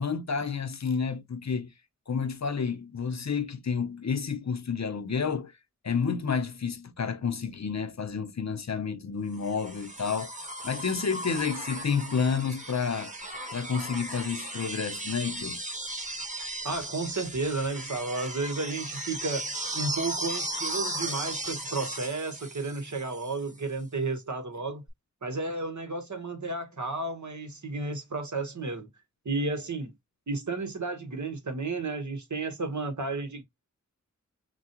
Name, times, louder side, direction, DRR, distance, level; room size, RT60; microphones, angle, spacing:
voice 1, 0.0-1.7 2.1-5.5 5.8-10.3 10.6-13.1 13.5-15.6, left 6 dB, 60° left, 0.7 m, -30 dB
sound 1, 9.4-23.4 24.9-25.0, right 1 dB, 25° right, 1.5 m, -36 dB
voice 2, 16.6-24.8 25.2-28.9 29.2-29.9 30.3-33.4, right 3 dB, 65° right, 1.4 m, -32 dB
5.9 x 2.3 x 2.9 m
wide cardioid pair, 75°, 31 cm